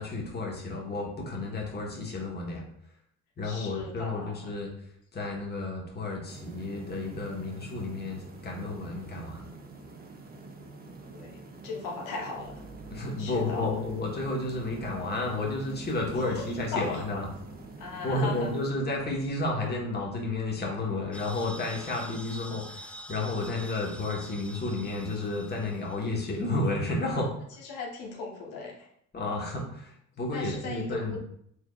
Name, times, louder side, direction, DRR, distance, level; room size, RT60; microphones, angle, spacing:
voice 1, 0.0-2.6 3.4-9.5 12.9-17.3 18.0-27.3 29.1-31.2, left 2 dB, 30° left, -2 dB, 1.3 m, -32 dB
voice 2, 3.4-4.3 11.1-12.6 13.2-13.7 16.2-16.4 16.7-17.0 17.8-18.5 27.7-28.9 30.3-31.2, left 4 dB, 85° left, -1 dB, 1.0 m, -37 dB
sound 1, 6.3-18.7, right 3 dB, 30° right, 0.7 m, -47 dB
sound 2, 12.3-24.4 24.7-25.1, right 1 dB, 80° right, 1.6 m, -49 dB
sound 3, 21.1-26.4, equal, 5° left, 0.3 m, -46 dB
4.6 x 3.6 x 2.4 m, 0.69 s
cardioid pair, 85°, 34 cm